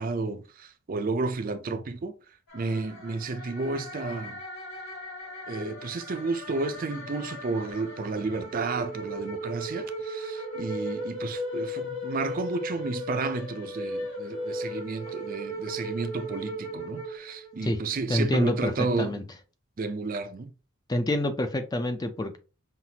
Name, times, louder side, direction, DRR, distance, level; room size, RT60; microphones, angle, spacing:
voice 1, 0.0-2.1 2.5-4.4 5.5-19.2 19.8-20.5, right 3 dB, 40° right, 0.4 m, -32 dB
sound 1, 2.5-17.8, equal, 75° left, 2.0 m, -37 dB
voice 2, 18.1-18.7 19.0-19.2 20.9-22.4, left 1 dB, 20° left, 0.4 m, -27 dB
5.7 x 2.4 x 2.8 m
head